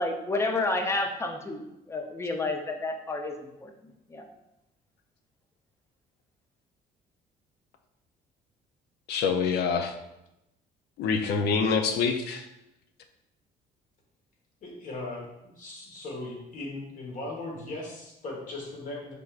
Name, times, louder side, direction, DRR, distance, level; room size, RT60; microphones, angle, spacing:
voice 1, 0.0-3.7 4.1-4.3, left 2 dB, 15° left, 4 dB, 0.5 m, -30 dB
voice 2, 9.1-9.9 11.0-12.5, left 5 dB, 75° left, 6 dB, 0.5 m, -26 dB
voice 3, 14.6-19.1, left 2 dB, 50° left, -1 dB, 1.4 m, -38 dB
5.1 x 3.4 x 2.4 m, 0.88 s
cardioid pair, 110°, 17 cm